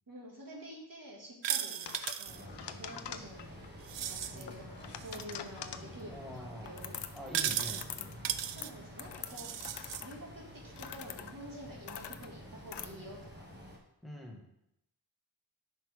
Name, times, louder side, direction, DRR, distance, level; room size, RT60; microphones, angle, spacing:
voice 1, 0.1-3.7 4.0-7.0 8.5-9.5 10.0-13.5, right 1 dB, 50° right, -3 dB, 2.1 m, -49 dB
sound 1, 1.4-2.4 3.8-4.4 5.0-5.4 7.3-7.8 8.2-8.7 9.3-10.0, right 10 dB, 75° right, 0.5 m, -36 dB
sound 2, 1.9-3.7 4.5-5.9 6.7-7.3 7.6-8.2 8.4-12.9, left 9 dB, 65° left, 0.6 m, -45 dB
sound 3, 2.2-13.8, equal, 25° right, 1.4 m, -50 dB
voice 2, 6.1-6.7 7.1-8.3 14.0-14.5, left 1 dB, ahead, -2 dB, 1.6 m, -45 dB
9.9 x 5.5 x 3.5 m, 0.81 s
wide cardioid pair, 125°, 44 cm